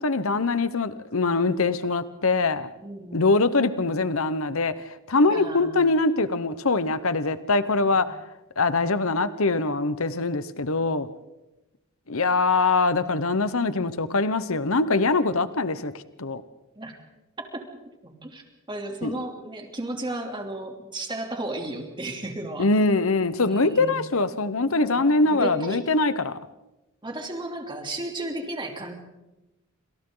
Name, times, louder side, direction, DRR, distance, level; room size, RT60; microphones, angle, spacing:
voice 1, 0.0-2.7 3.1-8.1 8.6-11.1 12.1-15.9 16.2-16.4 19.0-19.2 22.6-26.4, left 3 dB, 65° left, 13 dB, 1.0 m, -23 dB
voice 2, 2.8-3.2 5.3-5.8 7.9-8.0 16.7-17.0 17.5-17.6 18.0-18.4 18.7-22.7 23.5-23.9 24.8-25.8 27.0-28.9, right 1 dB, 20° right, 2 dB, 3.2 m, -34 dB
28.0 x 26.5 x 4.0 m, 1.0 s
head